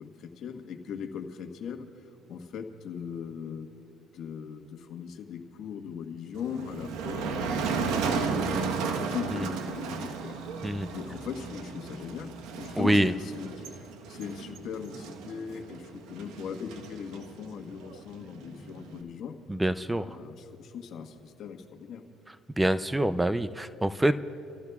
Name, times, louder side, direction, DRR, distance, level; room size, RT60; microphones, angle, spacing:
voice 1, 0.0-1.9 2.3-3.7 4.1-10.4 10.9-13.7 14.1-19.4 20.0-22.0, left 7 dB, 65° left, 5 dB, 1.4 m, -39 dB
Motor vehicle (road), 6.3-19.0, right 5 dB, 85° right, 1.1 m, -34 dB
voice 2, 12.8-13.1 19.5-20.1 22.6-24.2, right 1 dB, 10° right, 13 dB, 0.5 m, -25 dB
29.5 x 15.0 x 2.4 m, 2.8 s
cardioid pair, 90°, 0 cm